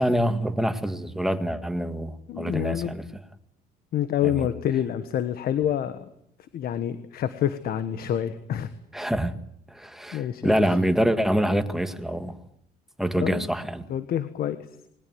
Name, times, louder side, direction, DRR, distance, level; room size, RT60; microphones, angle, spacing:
voice 1, 0.0-3.0 4.3-4.5 8.9-9.3 9.7-12.4 13.0-13.9, equal, ahead, 1.9 m, -25 dB
voice 2, 2.3-2.9 3.9-6.0 6.5-8.7 10.1-10.7 13.2-13.5 13.9-14.6, left 10 dB, 65° left, 1.5 m, -27 dB
21.0 x 19.0 x 9.6 m
cardioid pair, 110°, 17 cm